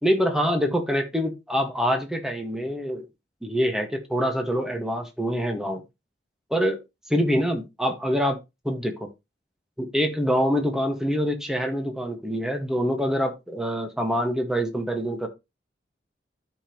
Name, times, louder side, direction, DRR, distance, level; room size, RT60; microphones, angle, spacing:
voice 1, 0.0-3.0 3.4-5.8 6.5-6.8 7.1-8.4 8.6-9.1 9.8-15.3, equal, 5° right, 1.7 m, -25 dB
13.0 x 5.4 x 3.1 m
head